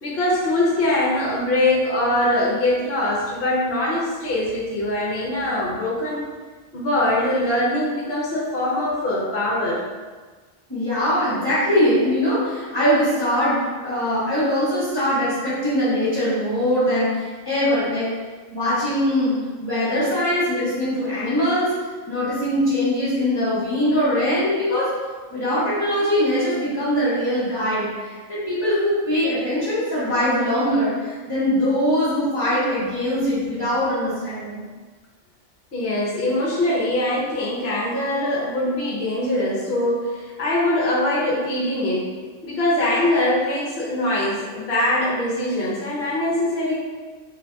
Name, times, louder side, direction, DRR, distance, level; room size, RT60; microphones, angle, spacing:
voice 1, 0.0-6.2 6.7-9.8 35.7-42.1 42.4-46.8, left 1 dB, 55° left, -6 dB, 0.9 m, -22 dB
voice 2, 10.7-18.1 18.5-19.3 19.6-21.7 22.1-24.9 25.3-34.6, equal, 20° left, -14 dB, 1.2 m, -22 dB
3.3 x 2.6 x 3.3 m, 1.4 s
omnidirectional pair, 1.3 m